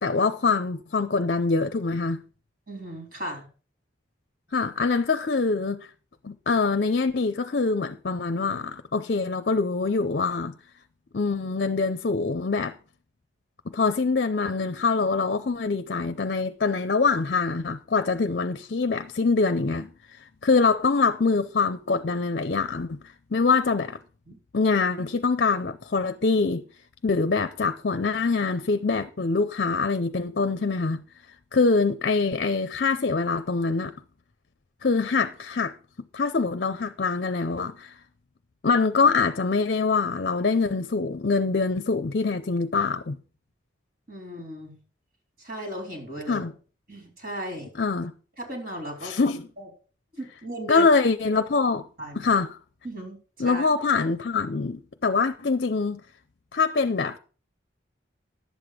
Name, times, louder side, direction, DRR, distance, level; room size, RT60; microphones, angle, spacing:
voice 1, 0.0-2.2 4.5-5.9 6.2-10.5 11.1-12.8 13.7-24.0 24.5-26.6 27.0-31.0 31.5-33.9 34.8-35.7 36.1-37.9 38.6-43.2 46.3-46.5 47.8-48.1 49.0-49.5 50.7-51.9 52.2-52.6 53.4-56.0 56.5-57.2, left 4 dB, 55° left, 0.5 m, -24 dB
voice 2, 2.7-3.5 24.3-24.4 44.1-44.7 45.4-46.5 46.9-47.7 48.4-49.1 49.6-49.7 50.1-50.9 52.0-52.3 52.8-53.7, right 1 dB, 50° right, 3.8 m, -36 dB
11.5 x 7.9 x 5.0 m
head